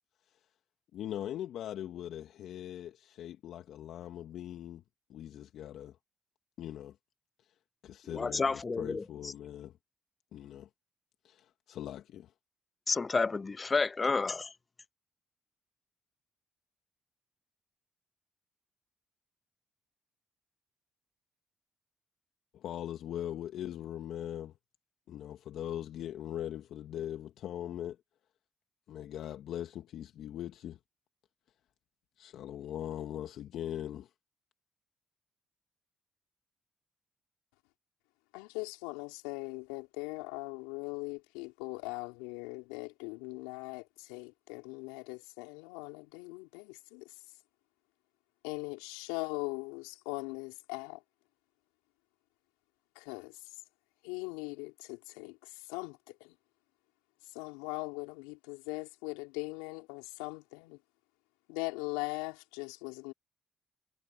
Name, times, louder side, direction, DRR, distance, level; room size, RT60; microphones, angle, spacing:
voice 1, 0.9-4.8 5.1-6.0 6.6-7.0 7.8-9.7 10.3-10.7 11.2-12.3 22.5-24.5 25.1-28.0 28.9-30.8 32.2-34.1, left 11 dB, 70° left, 1.9 m, -41 dB
voice 2, 8.1-9.3 12.9-14.5, left 4 dB, 35° left, 0.5 m, -30 dB
voice 3, 38.3-47.3 48.4-51.0 52.9-53.6 54.0-56.4 57.2-60.8 61.5-63.1, left 26 dB, 85° left, 3.5 m, -40 dB
hypercardioid pair, 50°, 0 cm